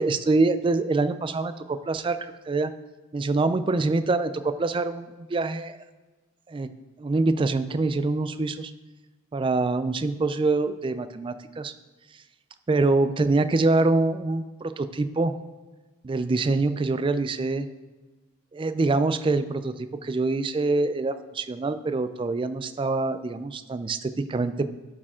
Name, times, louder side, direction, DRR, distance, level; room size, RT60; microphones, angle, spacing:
voice 1, 0.0-2.7 3.1-5.8 6.5-6.7 7.0-8.7 9.3-11.7 12.7-15.3 16.0-17.7 18.5-24.7, right 3 dB, 25° right, 11 dB, 0.3 m, -25 dB
11.5 x 4.9 x 3.6 m, 1.2 s
head